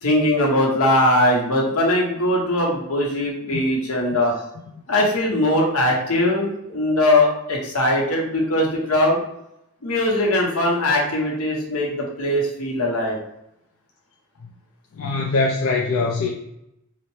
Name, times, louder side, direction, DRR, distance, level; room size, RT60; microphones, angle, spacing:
voice 1, 0.0-4.3 4.9-9.2 9.8-13.2, left 1 dB, 80° left, -1 dB, 1.0 m, -20 dB
voice 2, 15.0-16.3, left 3 dB, 60° left, 0 dB, 0.4 m, -22 dB
4.1 x 2.1 x 3.1 m, 0.82 s
head